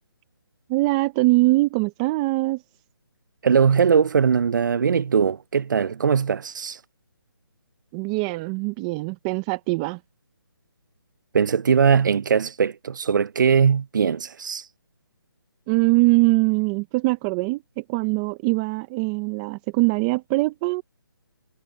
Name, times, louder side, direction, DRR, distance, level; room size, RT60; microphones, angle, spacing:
voice 1, 0.7-2.6 7.9-10.0 15.7-20.8, right 23 dB, 15° right, 0.6 m, -22 dB
voice 2, 3.4-6.8 11.3-14.6, right 6 dB, 55° right, 0.6 m, -20 dB
hypercardioid pair, 160°, 13 cm